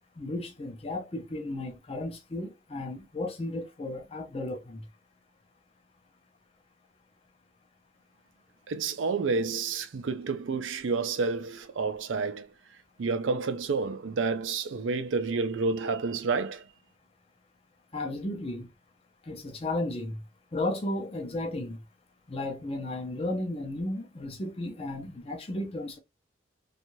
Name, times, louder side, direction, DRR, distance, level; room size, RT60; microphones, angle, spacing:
voice 1, 0.2-4.8 17.9-18.7 19.3-20.2 20.5-21.8 22.3-26.0, left 2 dB, 30° left, 0.6 m, -34 dB
voice 2, 8.7-12.5 13.0-16.7, right 4 dB, 90° right, 0.5 m, -29 dB
2.6 x 2.3 x 3.0 m
head